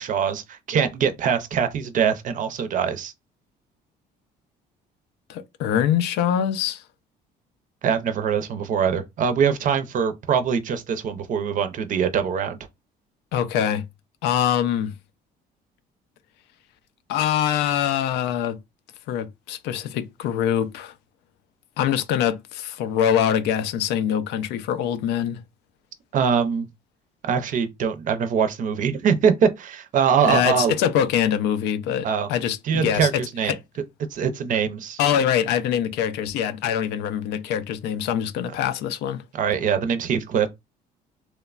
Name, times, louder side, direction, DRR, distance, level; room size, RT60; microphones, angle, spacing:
voice 1, 0.0-3.1 7.8-12.6 26.1-26.7 27.2-30.7 32.0-32.3 32.6-33.5 34.1-35.0 39.3-40.5, right 7 dB, 50° right, 0.5 m, -23 dB
voice 2, 5.3-6.8 13.3-13.9 14.2-14.9 17.1-18.6 19.1-20.9 21.8-25.4 30.2-33.1 33.5-33.6 35.0-39.2, left 9 dB, 85° left, 0.4 m, -24 dB
3.0 x 2.1 x 2.3 m
cardioid pair, 110°, 17 cm